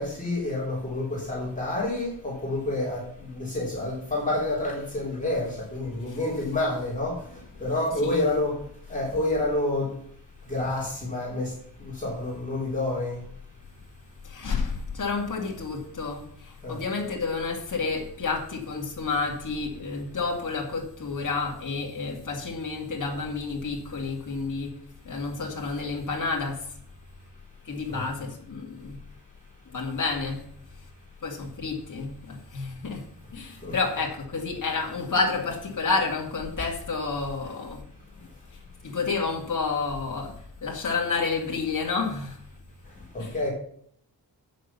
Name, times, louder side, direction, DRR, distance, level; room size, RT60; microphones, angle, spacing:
voice 1, 0.0-3.1 3.3-7.2 7.6-8.6 8.9-9.9 10.5-11.5 11.8-13.2 16.6-16.8 27.9-28.0 33.6-33.7 43.1-43.5, left 2 dB, 20° left, 3.6 m, -28 dB
voice 2, 14.2-24.8 25.0-26.8 27.6-29.0 29.7-30.5 30.8-30.9 31.2-37.8 38.5-42.4 43.2-43.5, left 4 dB, 50° left, 2.4 m, -30 dB
8.9 x 6.6 x 6.8 m
wide cardioid pair, 165°, 41 cm